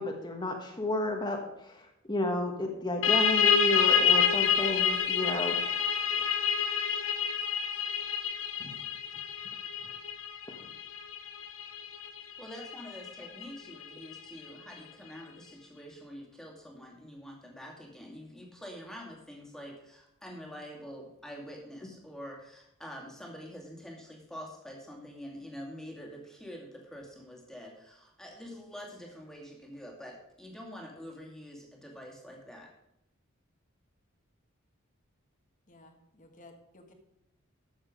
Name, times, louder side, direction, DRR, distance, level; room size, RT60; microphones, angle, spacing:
voice 1, 0.0-6.3 8.6-8.8 10.5-10.7, left 2 dB, 20° left, 2 dB, 1.4 m, -32 dB
sound 1, 3.0-14.4, left 7 dB, 65° left, 0.8 m, -28 dB
voice 2, 12.4-32.7, equal, ahead, -1 dB, 2.4 m, -46 dB
voice 3, 35.7-36.9, left 2 dB, 40° left, 5 dB, 1.6 m, -55 dB
13.5 x 7.2 x 5.1 m, 0.82 s
head